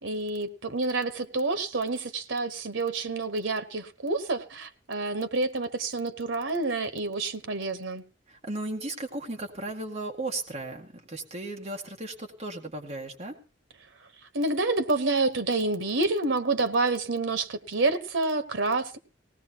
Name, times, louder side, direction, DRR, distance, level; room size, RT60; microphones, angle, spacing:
voice 1, 0.0-8.0 14.3-19.0, right 3 dB, 90° right, 1.1 m, -28 dB
voice 2, 8.3-13.4, right 2 dB, 35° right, 1.9 m, -36 dB
19.5 x 17.5 x 3.0 m
head